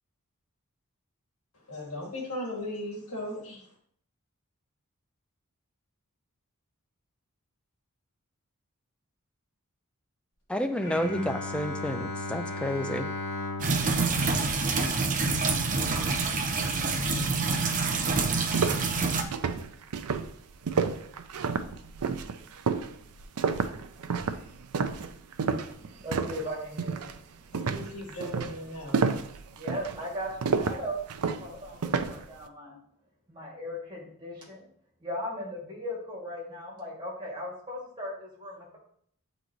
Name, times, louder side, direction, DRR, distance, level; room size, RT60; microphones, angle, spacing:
voice 1, 1.7-3.6 27.5-29.1, left 1 dB, 80° left, -2 dB, 2.1 m, -37 dB
voice 2, 10.5-13.1, equal, 5° left, 7 dB, 0.3 m, -30 dB
Bowed string instrument, 10.8-16.1, left 2 dB, 50° left, 2.0 m, -37 dB
sound 1, 13.6-19.2, right 4 dB, 35° right, 0.6 m, -27 dB
sound 2, 17.6-17.7 18.0-26.5 26.8-27.2 27.5-32.3, right 5 dB, 85° right, 0.5 m, -30 dB
voice 3, 25.5-27.6 29.5-31.0 31.4-32.8 33.3-34.6 35.0-38.8, equal, 20° right, -4 dB, 2.4 m, -38 dB
7.8 x 4.0 x 3.1 m, 0.63 s
head